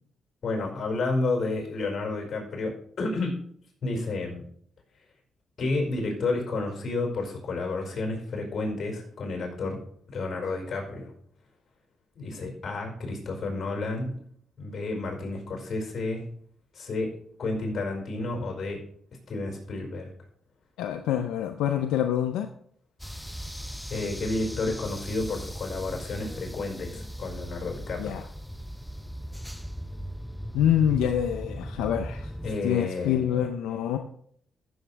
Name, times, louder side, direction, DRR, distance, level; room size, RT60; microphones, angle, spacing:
voice 1, 0.4-3.4 3.8-4.4 5.6-9.8 10.1-11.1 12.1-14.2 14.6-16.3 16.7-17.1 17.4-18.8 19.3-20.1 23.9-28.3 32.4-33.5, left 3 dB, 55° left, 0 dB, 5.1 m, -31 dB
voice 2, 20.8-22.5 28.0-28.2 30.5-32.3 32.6-34.0, left 10 dB, 90° left, 6 dB, 0.6 m, -26 dB
sound 1, 23.0-32.5, equal, 5° left, 0.7 m, -38 dB
15.0 x 7.2 x 3.4 m, 0.63 s
supercardioid pair, 65°, 0 cm